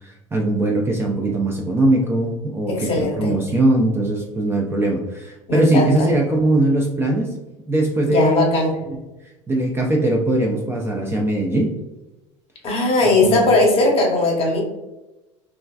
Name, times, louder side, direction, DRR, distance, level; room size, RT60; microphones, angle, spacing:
voice 1, 0.0-7.3 7.7-8.4 8.9-9.0 9.5-11.7 13.2-13.4, right 1 dB, 15° right, 0 dB, 0.4 m, -20 dB
voice 2, 2.7-3.3 5.5-6.1 8.1-8.7 12.6-14.6, left 2 dB, 35° left, 0 dB, 0.9 m, -18 dB
3.0 x 2.3 x 2.3 m, 1.0 s
hypercardioid pair, 75°, 16 cm